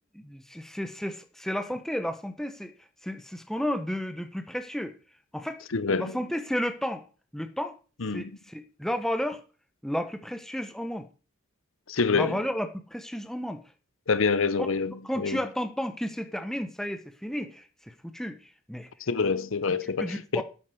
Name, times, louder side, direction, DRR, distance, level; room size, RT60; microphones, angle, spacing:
voice 1, 0.1-2.7 3.0-4.9 5.3-5.6 6.0-7.0 7.3-7.8 8.1-9.4 9.8-11.1 12.1-13.6 14.6-14.7 15.0-18.4 18.7-18.9 20.0-20.4, equal, ahead, 1.1 m, -32 dB
voice 2, 5.7-6.1 8.0-8.3 11.9-12.4 14.1-14.9 15.2-15.4 19.1-20.4, left 4 dB, 70° left, 0.8 m, -26 dB
9.6 x 8.5 x 6.1 m
head